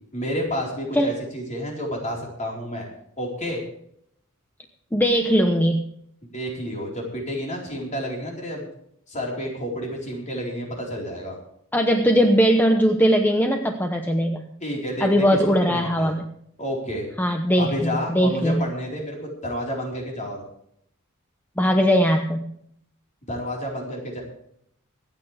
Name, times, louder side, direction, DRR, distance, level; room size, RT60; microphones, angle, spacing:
voice 1, 0.1-2.9 3.2-3.6 6.3-8.7 9.1-11.4 14.6-15.4 15.7-16.1 16.6-17.1 17.6-20.4 23.3-24.2, equal, 35° left, -2 dB, 4.4 m, -30 dB
voice 2, 4.9-5.9 11.7-14.5 15.0-16.2 17.2-18.6 21.6-22.5, equal, 10° left, 4 dB, 0.9 m, -20 dB
25.0 x 8.8 x 3.4 m, 0.70 s
head